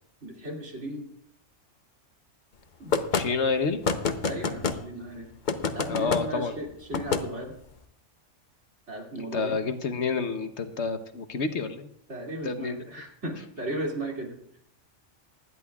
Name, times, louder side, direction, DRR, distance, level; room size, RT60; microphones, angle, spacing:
voice 1, 0.2-1.1 2.8-3.0 4.2-5.3 5.7-7.5 8.9-9.6 12.1-14.6, right 1 dB, 65° right, -1 dB, 3.0 m, -36 dB
sound 1, 2.9-3.3 3.8-4.8 5.5-6.2 6.9-7.2, left 5 dB, 45° left, 0.8 m, -26 dB
voice 2, 3.1-3.8 5.9-6.5 9.2-11.9 12.4-12.8, left 4 dB, 65° left, 8 dB, 1.2 m, -29 dB
19.5 x 12.5 x 2.4 m, 0.71 s
omnidirectional pair, 1.3 m